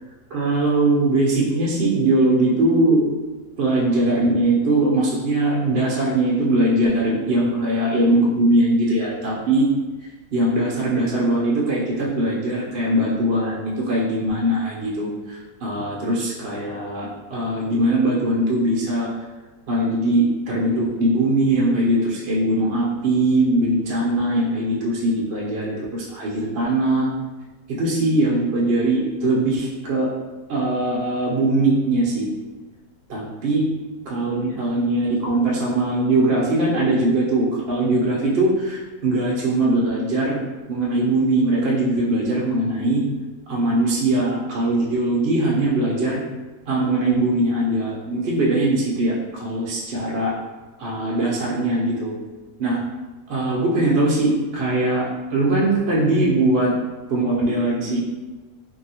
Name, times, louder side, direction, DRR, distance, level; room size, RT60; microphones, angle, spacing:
voice 1, 0.3-3.1 3.6-9.7 10.3-19.1 19.7-27.1 27.7-30.1 30.5-32.3 33.1-33.7 34.1-40.4 40.7-43.0 43.5-46.2 46.7-50.3 50.8-52.1 52.6-52.8 53.3-56.7 57.1-58.0, right 1 dB, 70° right, -4 dB, 0.5 m, -21 dB
2.7 x 2.7 x 2.7 m, 1.2 s
omnidirectional pair, 1.6 m